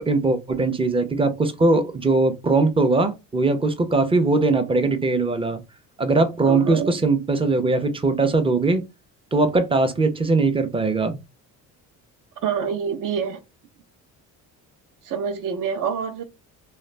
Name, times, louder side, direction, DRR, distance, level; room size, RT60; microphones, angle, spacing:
voice 1, 0.0-5.6 6.0-8.8 9.3-11.2, right 3 dB, 15° right, 0.5 m, -20 dB
voice 2, 6.4-6.9 12.4-13.4 15.0-16.2, right 7 dB, 55° right, 0.7 m, -26 dB
2.3 x 2.0 x 3.1 m
supercardioid pair, 75°, 40 cm